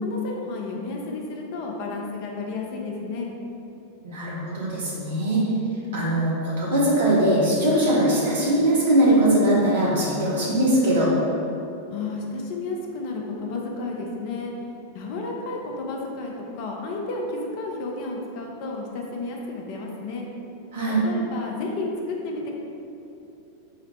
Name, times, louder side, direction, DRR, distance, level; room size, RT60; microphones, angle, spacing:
voice 1, 0.0-3.3 11.9-14.5 14.9-20.3 20.9-22.5, left 3 dB, 45° left, 0 dB, 0.5 m, -32 dB
voice 2, 4.0-5.4 5.9-11.1 20.7-21.0, right 1 dB, 60° right, -6 dB, 1.0 m, -21 dB
3.9 x 2.0 x 4.2 m, 2.9 s
figure-of-eight pair, 90°, 0 cm